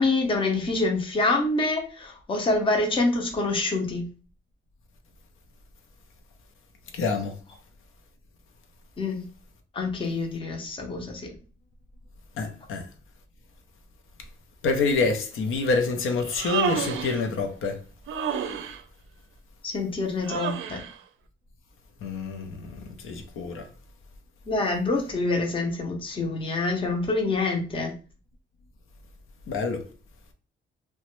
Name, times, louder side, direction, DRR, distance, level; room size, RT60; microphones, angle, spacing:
voice 1, 0.0-4.1 9.0-9.3 9.7-11.3 19.6-20.8 24.5-27.9, left 2 dB, 25° left, 0.6 m, -26 dB
voice 2, 6.9-7.4 12.4-12.9 14.6-17.8 22.0-23.7 29.5-29.8, left 4 dB, 80° left, 0.6 m, -27 dB
Human voice, 16.2-17.2 18.1-18.8 20.2-20.9, right 7 dB, 75° right, 0.4 m, -30 dB
2.9 x 2.2 x 3.0 m
wide cardioid pair, 175°, 21 cm